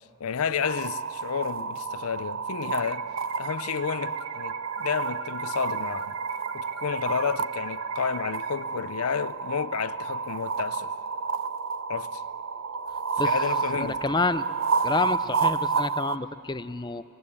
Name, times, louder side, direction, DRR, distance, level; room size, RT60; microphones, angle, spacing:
voice 1, 0.2-3.1 3.4-6.2 6.5-10.9 11.9-12.2 13.2-14.0, left 6 dB, 80° left, 0.6 m, -31 dB
sound 1, 0.6-16.2, right 5 dB, 60° right, 0.5 m, -30 dB
sound 2, 2.8-8.6, right 7 dB, 80° right, 0.9 m, -42 dB
voice 2, 13.7-14.5 14.8-17.0, left 3 dB, 20° left, 0.5 m, -28 dB
25.5 x 17.0 x 8.6 m
head